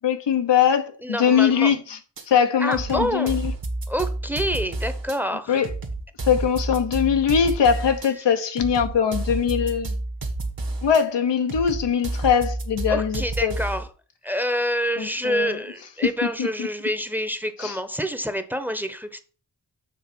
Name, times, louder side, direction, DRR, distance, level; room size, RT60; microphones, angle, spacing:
voice 1, 0.0-2.0 2.3-3.5 5.5-5.7 6.2-10.0 10.8-13.5 15.0-15.6 16.4-16.7 17.6-17.8, left 7 dB, 85° left, 0.9 m, -21 dB
voice 2, 1.0-1.7 2.6-3.4 3.9-5.6 12.9-13.9 14.2-19.2, equal, 5° right, 0.8 m, -27 dB
sound 1, 2.2-2.3 2.7-5.2 5.6-8.1 8.6-11.0 11.5-13.9, right 2 dB, 55° right, 1.5 m, -30 dB
7.3 x 3.2 x 6.1 m
cardioid pair, 50°, 41 cm